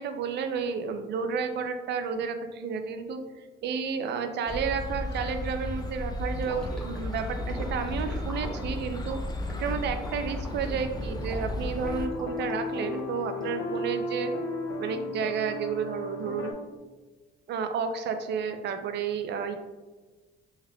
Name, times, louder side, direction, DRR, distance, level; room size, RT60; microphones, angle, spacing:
voice 1, 0.0-3.2 3.6-9.2 9.6-14.3 14.8-16.5 17.5-19.6, right 6 dB, 60° right, 7 dB, 0.4 m, -31 dB
sound 1, 4.5-12.1, left 1 dB, 20° left, 0.3 m, -34 dB
Gurgling / Liquid, 6.2-14.0, equal, 5° left, 0.9 m, -43 dB
sound 2, 10.7-16.5, left 2 dB, 85° left, 0.5 m, -35 dB
3.3 x 3.3 x 2.2 m, 1.3 s
cardioid pair, 90°, 20 cm